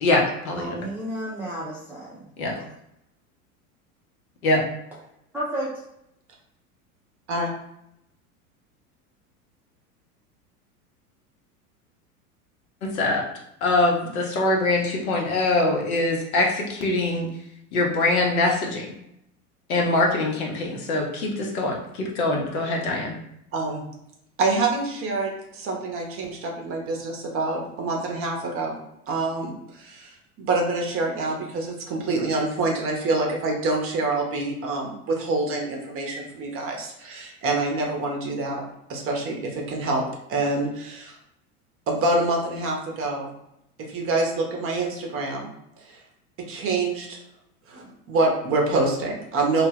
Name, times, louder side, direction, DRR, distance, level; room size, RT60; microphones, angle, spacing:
voice 1, 0.0-0.8 2.4-2.6 4.4-4.6 12.8-13.2 13.6-17.3 17.7-18.9 19.7-23.1, left 2 dB, 70° left, 0 dB, 0.9 m, -23 dB
voice 2, 0.5-2.3 2.5-2.6 5.3-5.8, right 1 dB, 5° right, -9 dB, 0.3 m, -32 dB
voice 3, 23.5-23.8 24.4-28.8 29.1-38.6 38.9-40.0 40.3-41.2 41.9-43.3 43.9-45.5 45.8-46.0 46.5-47.2 47.7-49.7, right 2 dB, 30° right, 0 dB, 0.7 m, -26 dB
2.3 x 2.1 x 3.3 m, 0.80 s
hypercardioid pair, 85°, 44 cm